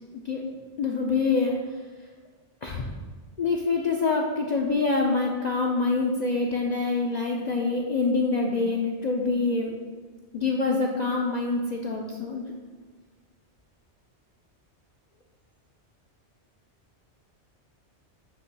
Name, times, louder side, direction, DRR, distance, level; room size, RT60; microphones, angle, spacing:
voice 1, 0.8-1.8 2.6-2.9 3.4-9.7 10.3-12.5, left 3 dB, 50° left, 0 dB, 0.5 m, -26 dB
7.4 x 3.1 x 5.3 m, 1.4 s
omnidirectional pair, 1.2 m